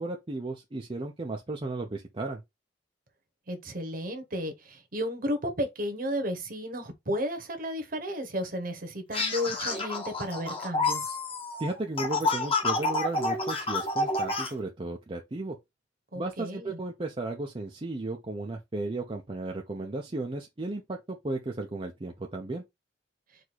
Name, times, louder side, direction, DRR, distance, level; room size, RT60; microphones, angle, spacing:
voice 1, 0.0-2.4 11.6-15.6 16.1-22.6, right 2 dB, 30° right, 0.6 m, -34 dB
voice 2, 3.5-11.2 16.1-16.8, equal, 50° right, 1.2 m, -33 dB
sound 1, 9.1-14.5, left 2 dB, 30° left, 1.1 m, -29 dB
4.7 x 2.7 x 4.1 m
head